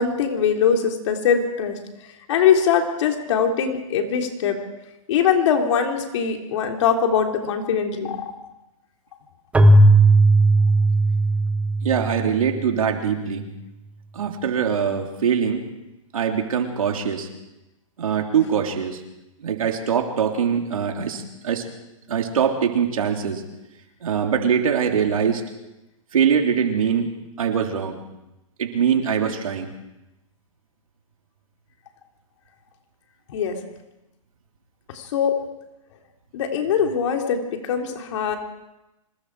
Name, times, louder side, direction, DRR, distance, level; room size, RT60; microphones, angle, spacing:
voice 1, 0.0-1.8 2.3-4.6 5.1-8.2 33.3-33.6 35.1-35.4 36.3-38.4, left 7 dB, 60° left, 3 dB, 3.6 m, -21 dB
Keyboard (musical), 9.5-13.1, right 2 dB, 5° right, 1.2 m, -17 dB
voice 2, 11.8-13.4 14.1-15.6 16.1-17.3 18.0-19.0 19.4-21.7 22.1-23.4 24.0-25.4 26.1-28.0 28.6-29.7, right 7 dB, 85° right, 3 dB, 3.4 m, -23 dB
25.5 x 21.0 x 4.9 m, 0.96 s
hypercardioid pair, 145°, 17 cm